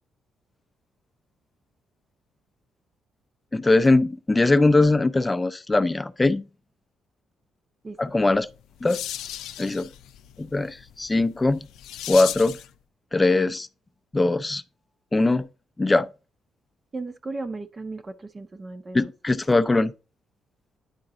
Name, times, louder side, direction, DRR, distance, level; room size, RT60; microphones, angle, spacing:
voice 1, 3.5-6.4 8.0-8.5 8.8-9.0 9.6-9.9 10.4-11.7 12.1-12.6 13.1-13.7 14.1-14.6 15.1-15.5 15.8-16.1 18.9-19.9, left 2 dB, 20° left, 0.5 m, -21 dB
voice 2, 7.8-8.2 16.9-19.1, right 3 dB, 30° right, 0.6 m, -36 dB
sound 1, 8.3-12.8, left 11 dB, 85° left, 0.3 m, -37 dB
9.7 x 3.9 x 3.7 m
cardioid pair, 90°, 0 cm